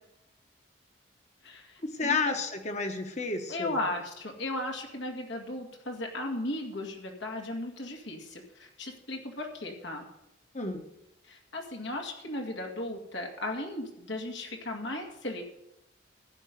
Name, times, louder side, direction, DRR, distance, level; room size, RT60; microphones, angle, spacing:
voice 1, 1.4-2.3 3.5-10.0 11.3-15.4, left 1 dB, 70° left, 1 dB, 2.2 m, -36 dB
voice 2, 1.9-3.8 10.5-10.8, left 4 dB, 35° left, 5 dB, 1.5 m, -31 dB
14.5 x 5.6 x 9.5 m, 0.86 s
head